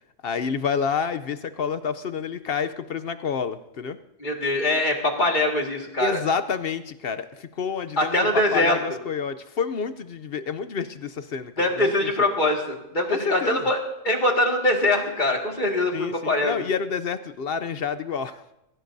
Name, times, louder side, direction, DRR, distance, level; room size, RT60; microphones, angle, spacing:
voice 1, 0.2-4.0 6.0-11.9 13.1-13.6 15.9-18.4, left 6 dB, 60° left, 11 dB, 0.8 m, -29 dB
voice 2, 4.2-6.2 8.0-8.8 11.6-13.8 14.0-16.6, left 1 dB, 40° left, 1 dB, 2.1 m, -23 dB
23.0 x 16.0 x 2.7 m, 0.88 s
omnidirectional pair, 1.3 m